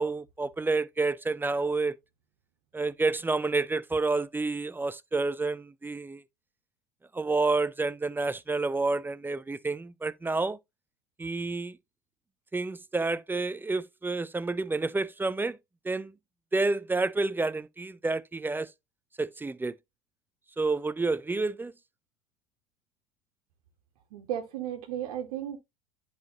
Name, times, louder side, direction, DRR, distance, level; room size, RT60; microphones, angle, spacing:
voice 1, 0.0-2.0 2.7-6.2 7.1-10.6 11.2-11.8 12.5-15.6 15.8-16.1 16.5-18.7 19.2-19.7 20.6-21.7, right 3 dB, 10° right, 0.5 m, -29 dB
voice 2, 24.1-25.6, right 11 dB, 75° right, 1.5 m, -34 dB
10.5 x 4.8 x 2.9 m
hypercardioid pair, 90°, 19 cm